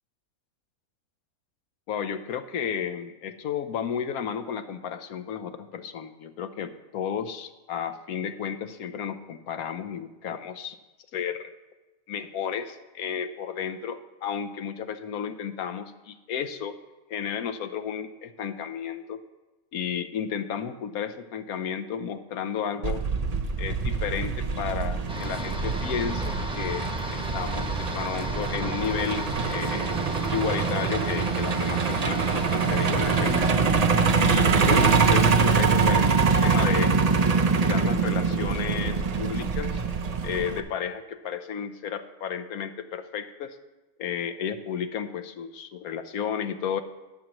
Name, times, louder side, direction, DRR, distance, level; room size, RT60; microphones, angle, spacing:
voice 1, 1.9-10.8 11.1-11.5 12.1-16.8 17.1-19.2 19.7-23.0 23.6-30.0 30.3-33.6 34.2-36.9 37.7-39.8 40.2-43.6 44.0-46.8, left 8 dB, 80° left, 11 dB, 1.2 m, -32 dB
Truck, 22.8-40.6, right 5 dB, 55° right, 0.4 m, -24 dB
sound 1, 25.1-33.5, equal, 5° right, 0.9 m, -34 dB
20.5 x 7.5 x 3.0 m, 1.1 s
omnidirectional pair, 1.5 m